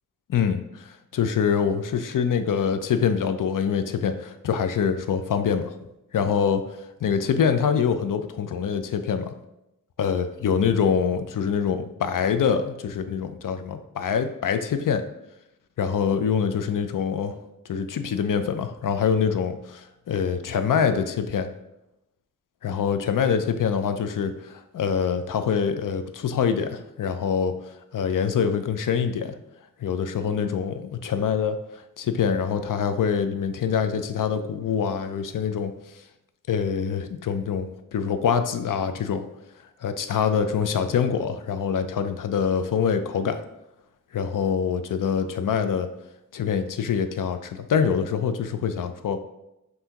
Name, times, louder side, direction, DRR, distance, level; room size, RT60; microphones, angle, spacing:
voice 1, 0.3-0.6 1.1-5.7 6.1-6.6 7.0-9.3 10.0-15.0 15.8-17.3 17.7-21.5 22.6-27.5 27.9-29.3 29.8-31.6 32.0-35.7 36.5-39.2 39.8-43.4 44.1-45.9 46.3-49.2, left 7 dB, 70° left, 9 dB, 0.5 m, -25 dB
5.5 x 2.7 x 2.9 m, 0.88 s
wide cardioid pair, 90°, 33 cm